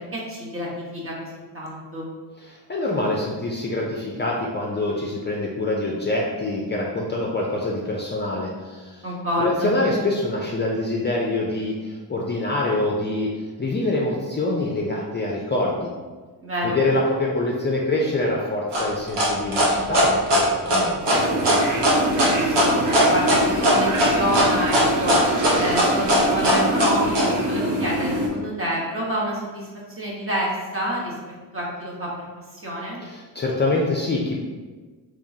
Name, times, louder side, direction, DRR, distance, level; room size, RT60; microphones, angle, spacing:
voice 1, 0.1-2.1 9.0-9.8 16.4-16.8 22.2-25.2 25.6-29.7 30.0-31.1 31.5-32.1 32.5-33.0, equal, 30° right, -5 dB, 1.2 m, -28 dB
voice 2, 2.4-9.1 9.4-13.3 13.6-15.9 16.6-21.0 33.0-34.4, left 2 dB, 25° left, -2 dB, 0.5 m, -25 dB
sound 1, 18.7-27.3, equal, 75° right, 1.0 m, -19 dB
sound 2, 21.1-28.3, equal, 45° right, 0.8 m, -25 dB
3.6 x 3.0 x 2.7 m, 1.4 s
cardioid pair, 85°, 43 cm